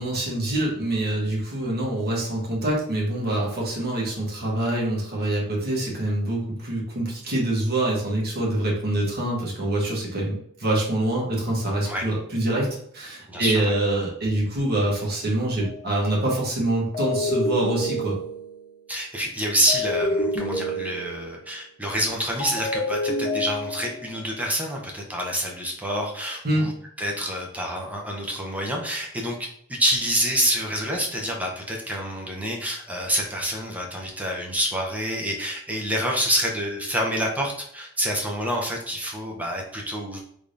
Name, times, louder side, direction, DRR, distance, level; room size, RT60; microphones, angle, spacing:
voice 1, 0.0-18.2 26.4-26.7, right 1 dB, 45° right, -3 dB, 1.1 m, -25 dB
voice 2, 13.3-13.7 18.9-26.7 27.0-29.4 29.7-40.2, equal, 5° right, -1 dB, 0.6 m, -27 dB
sound 1, 15.6-15.9 16.9-18.7 19.7-21.4 22.4-24.1, left 1 dB, 40° left, 0.9 m, -28 dB
3.5 x 3.2 x 2.5 m, 0.68 s
head